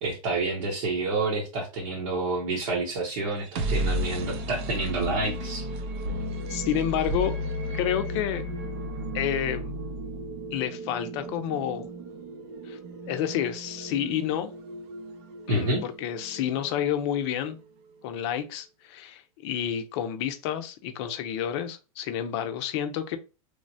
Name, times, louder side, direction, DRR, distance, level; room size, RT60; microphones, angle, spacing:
voice 1, 0.0-5.7 15.5-15.8, right 2 dB, 65° right, 1.0 m, -28 dB
sound 1, 3.3-17.1, equal, 50° right, 0.5 m, -34 dB
voice 2, 6.5-7.4 7.7-8.4 9.1-9.7 10.5-11.9 12.7-12.8 13.1-14.5 15.5-17.6 18.0-23.2, left 10 dB, 50° left, 0.5 m, -29 dB
3.1 x 2.1 x 2.6 m
hypercardioid pair, 125°, 18 cm